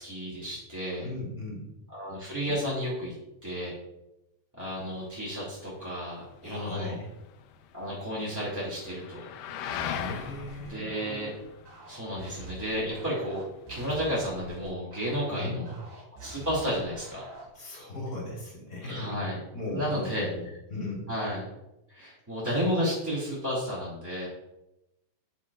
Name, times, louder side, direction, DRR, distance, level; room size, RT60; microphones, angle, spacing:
voice 1, 0.0-1.1 1.9-3.1 3.4-3.7 4.6-7.0 7.7-9.3 10.6-11.3 11.9-13.4 13.7-15.7 16.2-17.2 17.6-17.8 18.8-19.4 19.7-20.3 21.1-21.5 21.9-24.3, equal, 5° right, -7 dB, 1.5 m, -32 dB
voice 2, 1.0-1.7 6.4-7.1 10.0-10.9 15.3-15.7 17.5-19.2 19.5-21.1, left 2 dB, 30° left, -2 dB, 2.1 m, -37 dB
sound 1, 4.6-14.5, left 9 dB, 75° left, 2.0 m, -42 dB
sound 2, 9.7-17.6, right 3 dB, 60° right, 4.5 m, -47 dB
9.7 x 8.7 x 2.4 m, 0.91 s
omnidirectional pair, 4.1 m